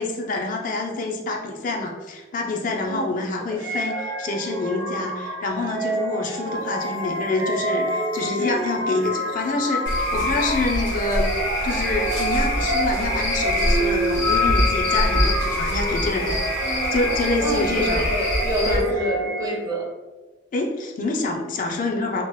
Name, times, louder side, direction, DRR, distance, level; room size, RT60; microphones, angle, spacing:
voice 1, 0.0-11.4 11.6-16.4 16.9-18.0 18.7-18.9 20.5-22.2, left 2 dB, 45° left, 1 dB, 0.4 m, -26 dB
sound 1, 3.6-19.8, equal, 80° right, 0.4 m, -28 dB
sound 2, 6.5-10.9, left 2 dB, 90° left, 0.6 m, -31 dB
Cricket / Frog, 9.9-18.8, left 1 dB, 70° left, 1.2 m, -25 dB
voice 2, 16.6-17.2 17.4-19.9, right 1 dB, 20° right, -1 dB, 0.5 m, -28 dB
2.9 x 2.0 x 3.1 m, 1.2 s
head